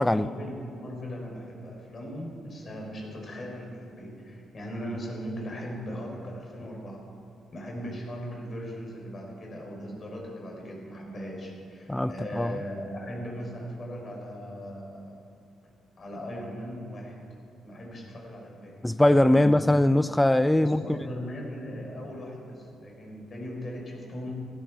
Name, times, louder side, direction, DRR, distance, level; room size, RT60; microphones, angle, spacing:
voice 1, 0.1-7.0 7.5-15.2 16.0-17.1 17.6-18.8 19.3-19.5 20.6-24.3, equal, 40° left, 4.3 m, -38 dB
voice 2, 11.9-12.5 18.8-20.8, left 1 dB, 10° left, 0.3 m, -21 dB
16.0 x 12.0 x 4.7 m
cardioid pair, 90°, 0 cm